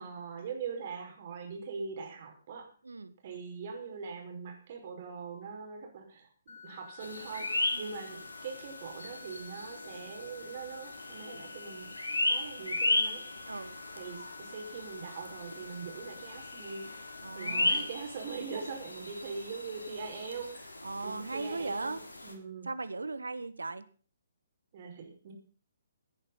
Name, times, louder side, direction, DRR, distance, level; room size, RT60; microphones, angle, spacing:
voice 1, 0.0-2.7 3.2-12.0 12.2-13.2 14.0-16.9 17.3-20.7 21.0-22.7 24.7-25.3, right 5 dB, 40° right, 2 dB, 5.2 m, -42 dB
sound 1, 6.5-17.9, left 6 dB, 55° left, 2.5 m, -51 dB
sound 2, 7.0-22.3, left 2 dB, 75° left, 3.2 m, -36 dB
voice 2, 13.5-13.8 17.2-17.9 20.8-22.0 22.6-23.8, right 3 dB, 75° right, 14 dB, 1.5 m, -38 dB
17.0 x 9.8 x 5.7 m, 0.42 s
figure-of-eight pair, 130°, 0 cm